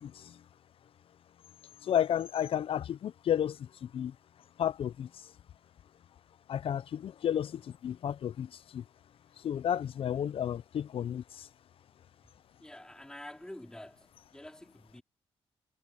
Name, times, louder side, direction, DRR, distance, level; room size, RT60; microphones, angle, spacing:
voice 1, 0.0-0.4 1.8-4.1 4.6-5.1 6.5-8.8 9.4-11.5, left 10 dB, 60° left, 0.5 m, -32 dB
voice 2, 12.6-15.0, left 1 dB, 5° left, 3.4 m, -48 dB
cardioid pair, 110°, 11 cm